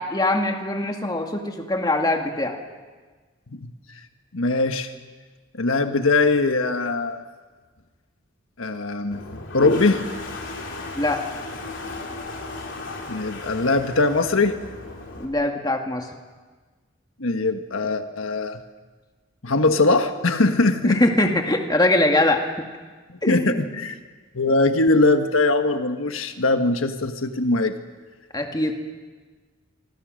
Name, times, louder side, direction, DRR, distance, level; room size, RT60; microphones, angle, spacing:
voice 1, 0.0-2.6 11.0-11.2 15.2-16.1 20.8-22.4 23.2-23.6 28.3-28.7, left 1 dB, 20° left, 3 dB, 2.1 m, -22 dB
voice 2, 4.3-4.9 5.5-7.2 8.6-10.1 13.1-14.6 17.2-18.6 19.4-21.0 23.1-24.0 24.3-27.8, left 3 dB, 80° left, 7 dB, 1.5 m, -21 dB
Toilet flush, 9.1-15.2, left 2 dB, 60° left, 3.7 m, -33 dB
26.0 x 25.5 x 6.5 m, 1.4 s
head